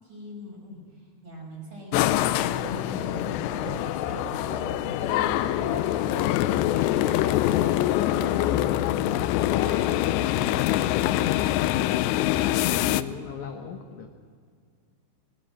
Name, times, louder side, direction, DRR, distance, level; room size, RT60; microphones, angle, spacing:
voice 1, 0.0-6.0 6.9-7.4 8.0-10.0, equal, 30° right, -1 dB, 6.4 m, -42 dB
sound 1, 1.9-13.0, left 14 dB, 85° left, 2.8 m, -24 dB
sound 2, 2.3-9.0, right 7 dB, 90° right, 1.5 m, -43 dB
voice 2, 6.4-7.5 10.5-11.3 11.7-14.1, left 6 dB, 70° left, 5 dB, 1.8 m, -39 dB
21.0 x 18.0 x 7.8 m, 2.1 s
omnidirectional pair, 4.8 m